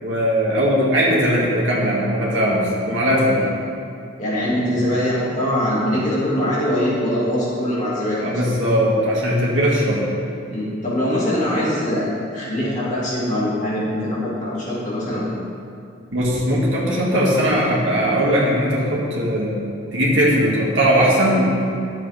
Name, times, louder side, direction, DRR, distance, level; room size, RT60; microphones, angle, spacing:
voice 1, 0.0-3.4 8.2-10.1 16.1-19.6 19.9-21.5, equal, 75° right, -5 dB, 2.3 m, -19 dB
voice 2, 4.2-8.3 10.5-15.3, left 1 dB, 40° left, -8 dB, 2.4 m, -22 dB
12.5 x 7.4 x 3.5 m, 2.6 s
head